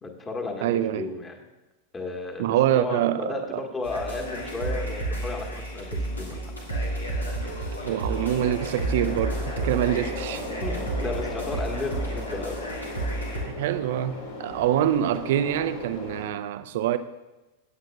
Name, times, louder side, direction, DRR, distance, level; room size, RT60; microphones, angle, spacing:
voice 1, 0.0-1.4 1.9-6.5 10.6-12.6, left 3 dB, 20° left, 1.6 m, -34 dB
voice 2, 0.6-1.1 2.4-3.6 7.8-10.4 13.4-17.0, right 11 dB, 55° right, 0.6 m, -25 dB
sound 1, 3.8-13.4, right 1 dB, 80° left, 2.2 m, -31 dB
sound 2, 8.1-16.2, left 2 dB, 65° left, 3.6 m, -38 dB
18.0 x 8.5 x 2.4 m
figure-of-eight pair, 90°, 0 cm